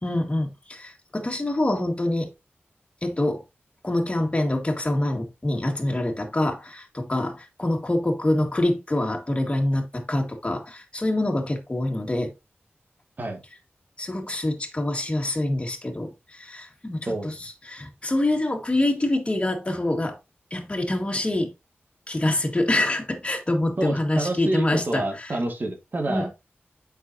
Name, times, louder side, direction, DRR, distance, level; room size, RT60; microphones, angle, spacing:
voice 1, 0.0-2.3 3.0-3.4 3.8-12.3 14.0-17.3 17.7-20.2 20.5-21.5 22.1-25.0 26.1-26.3, left 1 dB, 25° left, 1.9 m, -25 dB
voice 2, 23.8-26.3, right 2 dB, 50° right, 1.9 m, -28 dB
8.1 x 5.7 x 2.8 m
wide cardioid pair, 95°, 4 cm